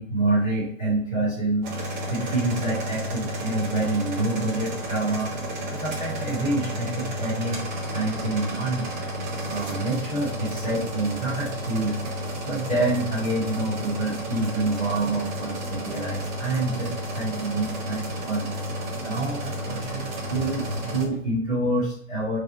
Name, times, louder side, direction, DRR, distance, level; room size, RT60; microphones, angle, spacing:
voice 1, 0.0-1.7 2.1-5.3 5.7-8.9 9.5-12.0 12.4-18.5 18.9-22.4, right 2 dB, 5° left, -18 dB, 0.3 m, -27 dB
sound 1, 1.6-21.0, equal, 35° right, 1.2 m, -32 dB
3.6 x 3.2 x 4.2 m, 0.65 s
hypercardioid pair, 140°, 39 cm